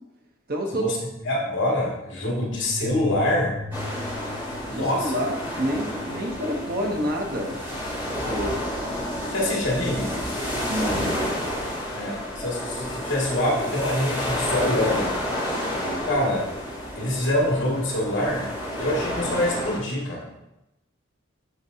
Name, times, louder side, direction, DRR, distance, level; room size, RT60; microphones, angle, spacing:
voice 1, 0.5-0.8 4.6-7.6 8.2-8.6 10.7-11.1 15.7-16.0, equal, 45° right, 1 dB, 0.9 m, -28 dB
voice 2, 1.2-3.6 4.6-5.1 9.3-10.2 11.9-15.2 16.0-16.5 16.9-18.5 18.8-20.2, left 1 dB, 60° left, -4 dB, 2.2 m, -25 dB
sound 1, 2.3-10.4, left 3 dB, 25° left, 1.2 m, -41 dB
sound 2, 3.7-19.8, equal, 10° right, 2.5 m, -30 dB
11.0 x 3.9 x 2.8 m, 0.92 s
head